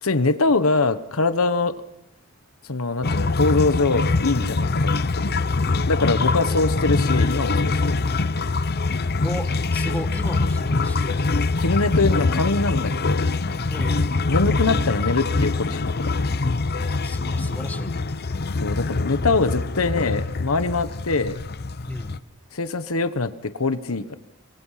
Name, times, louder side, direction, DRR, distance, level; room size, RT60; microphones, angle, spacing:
voice 1, 0.0-1.7 2.7-5.2 5.9-8.0 11.6-13.3 14.3-16.2 18.6-21.4 22.5-24.2, left 3 dB, 85° left, 11 dB, 1.2 m, -23 dB
sound 1, 3.0-22.2, left 3 dB, 50° left, 0.8 m, -24 dB
voice 2, 6.1-6.7 9.2-11.4 13.7-14.2 16.8-18.0 21.9-22.2, left 1 dB, 10° left, 7 dB, 1.5 m, -35 dB
26.5 x 21.5 x 5.8 m, 0.83 s
head